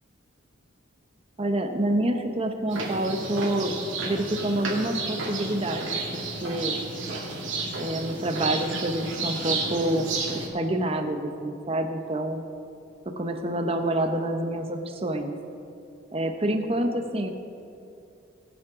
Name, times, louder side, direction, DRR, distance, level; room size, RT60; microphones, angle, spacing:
voice 1, 1.4-3.7 4.0-5.9 6.1-6.8 7.8-12.4 13.1-15.3 16.1-17.3, right 1 dB, 30° right, 5 dB, 0.8 m, -27 dB
sound 1, 2.7-10.5, right 3 dB, 65° right, 2.2 m, -32 dB
20.5 x 7.6 x 3.7 m, 2.6 s
head